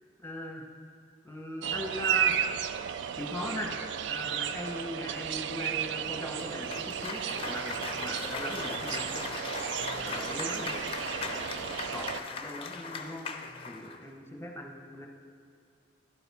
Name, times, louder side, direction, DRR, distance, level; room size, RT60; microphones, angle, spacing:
voice 1, 0.2-0.6 1.2-2.8 3.2-9.2 10.0-10.8 11.2-11.6 11.9-12.1 12.4-13.3 13.7-15.1, equal, 15° left, 1 dB, 0.9 m, -39 dB
sound 1, 1.6-12.2, right 9 dB, 80° right, 0.3 m, -34 dB
Cheering / Applause, 6.3-14.0, left 4 dB, 30° left, 0.5 m, -38 dB
11.0 x 6.8 x 4.1 m, 2.4 s
head